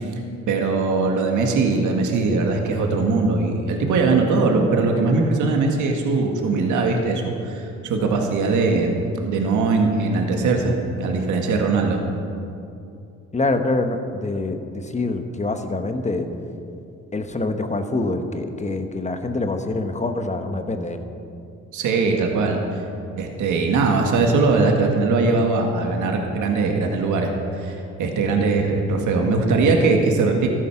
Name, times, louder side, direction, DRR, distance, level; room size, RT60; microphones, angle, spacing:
voice 1, 0.5-12.0 21.7-22.6 23.2-30.5, right 3 dB, 80° right, 2 dB, 1.9 m, -20 dB
voice 2, 13.3-16.3 17.1-21.0, left 2 dB, 25° left, 7 dB, 1.3 m, -25 dB
14.5 x 11.5 x 5.9 m, 2.6 s
cardioid pair, 90°, 30 cm